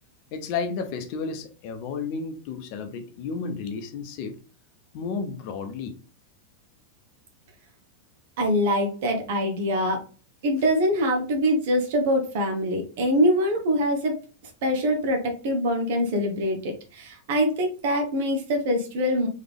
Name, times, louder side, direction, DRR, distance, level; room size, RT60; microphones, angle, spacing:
voice 1, 0.3-4.4 4.9-5.9, left 5 dB, 45° left, 7 dB, 0.7 m, -32 dB
voice 2, 8.4-10.0 10.4-14.2 14.6-19.3, equal, 50° right, 4 dB, 0.9 m, -24 dB
3.6 x 3.4 x 3.5 m, 0.36 s
figure-of-eight pair, 90°, 0 cm